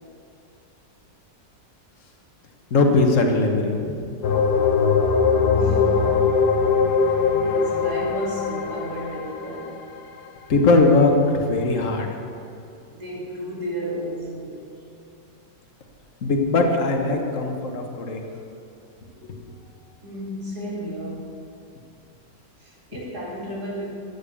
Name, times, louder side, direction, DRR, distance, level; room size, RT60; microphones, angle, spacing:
voice 1, 2.7-4.1 10.5-12.1 16.2-18.2 19.2-19.3, left 3 dB, 45° left, 2 dB, 1.6 m, -20 dB
sound 1, 4.2-9.9, left 5 dB, 65° left, 1.5 m, -21 dB
voice 2, 5.5-6.2 7.1-9.8 12.9-14.6 20.0-21.4 22.6-23.9, equal, 60° right, -4 dB, 3.0 m, -33 dB
13.5 x 8.8 x 7.0 m, 2.5 s
omnidirectional pair, 1.9 m